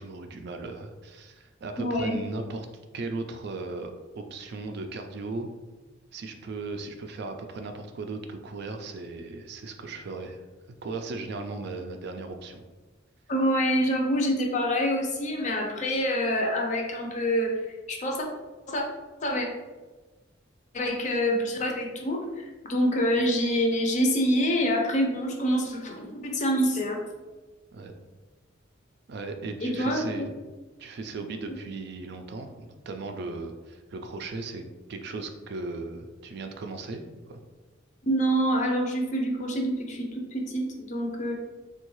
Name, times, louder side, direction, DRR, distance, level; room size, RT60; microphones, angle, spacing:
voice 1, 0.0-2.7 2.9-5.5 6.1-10.4 10.8-12.6 27.7-27.9 29.1-30.3 30.8-34.6 34.9-37.0 37.3-37.4, right 3 dB, 55° right, 6 dB, 0.3 m, -37 dB
voice 2, 1.8-2.2 13.3-17.6 17.9-18.3 18.7-18.8 19.2-19.5 20.7-27.0 29.6-30.3 38.0-41.3, equal, 40° left, 1 dB, 0.5 m, -26 dB
3.5 x 2.3 x 3.0 m, 1.2 s
head